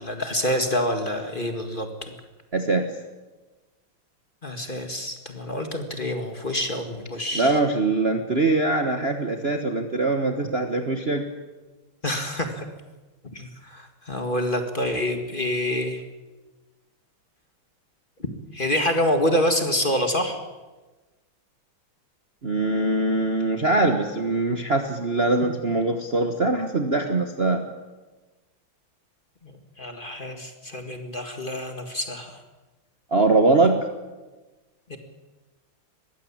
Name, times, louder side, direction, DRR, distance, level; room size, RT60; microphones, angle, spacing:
voice 1, 0.0-1.9 4.4-7.6 12.0-12.7 13.3-16.0 18.5-20.4 29.8-32.4 34.9-35.0, left 1 dB, 25° left, 5 dB, 1.9 m, -27 dB
voice 2, 2.5-2.9 7.3-11.3 22.4-27.6 33.1-33.8, right 2 dB, 35° right, 5 dB, 1.3 m, -22 dB
21.5 x 15.5 x 8.7 m, 1.2 s
omnidirectional pair, 2.4 m